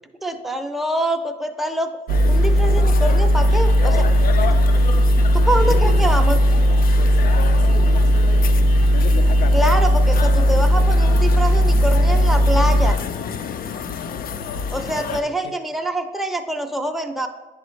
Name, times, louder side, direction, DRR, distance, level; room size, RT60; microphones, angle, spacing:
voice 1, 0.2-1.9 2.3-4.1 4.5-4.8 5.3-6.4 9.5-13.0 14.7-17.3, right 1 dB, ahead, 4 dB, 0.5 m, -25 dB
sound 1, 2.1-15.2, left 7 dB, 50° left, 0.4 m, -30 dB
sound 2, 2.1-12.9, equal, 85° right, 0.4 m, -16 dB
voice 2, 5.5-6.0 6.9-8.5 14.5-15.5, equal, 75° left, 3 dB, 1.3 m, -36 dB
9.8 x 4.0 x 3.1 m, 1.2 s
cardioid pair, 90°, 20 cm